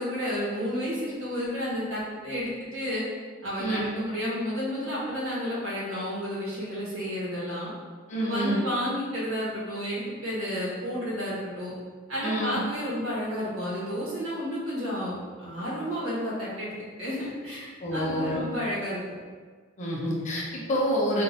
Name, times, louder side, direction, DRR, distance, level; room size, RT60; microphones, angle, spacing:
voice 1, 0.0-3.0 3.4-7.7 8.1-11.7 12.1-19.0, equal, 80° right, -7 dB, 1.4 m, -31 dB
voice 2, 8.1-8.6 12.2-12.6 17.8-18.4 19.8-21.2, equal, 35° left, -5 dB, 0.8 m, -27 dB
3.8 x 2.6 x 4.0 m, 1.5 s
head